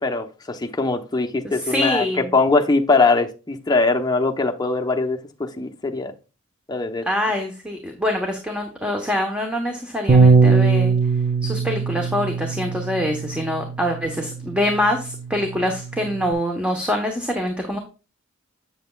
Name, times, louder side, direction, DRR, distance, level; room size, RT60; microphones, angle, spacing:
voice 1, 0.0-6.1 6.7-7.1, left 3 dB, 20° left, 0.8 m, -21 dB
voice 2, 1.4-2.3 7.0-10.9 11.4-17.8, left 1 dB, 5° right, 1.1 m, -24 dB
Bass guitar, 10.1-16.3, right 4 dB, 35° right, 0.7 m, -21 dB
7.8 x 7.8 x 2.4 m
head